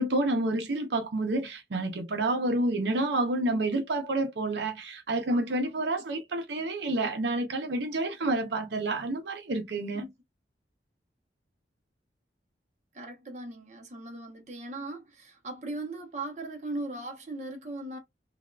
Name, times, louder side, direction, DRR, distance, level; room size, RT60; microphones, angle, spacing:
voice 1, 0.0-10.1, right 2 dB, 75° right, 0.6 m, -29 dB
voice 2, 12.9-18.0, right 2 dB, 40° right, 0.8 m, -39 dB
3.4 x 2.3 x 2.3 m
head